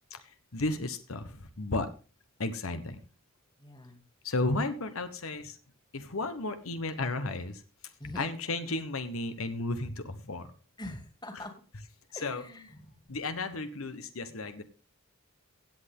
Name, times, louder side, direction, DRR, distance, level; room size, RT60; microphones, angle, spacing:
voice 1, 0.5-1.9 2.4-3.0 4.2-5.6 5.9-7.6 8.1-10.5 11.3-11.5 12.2-12.4 13.1-14.6, left 2 dB, 80° left, 9 dB, 1.1 m, -33 dB
voice 2, 3.6-4.0 8.0-8.3 10.8-11.5 12.1-12.9, left 1 dB, 20° left, 5 dB, 2.3 m, -43 dB
16.5 x 8.0 x 3.7 m, 0.34 s
head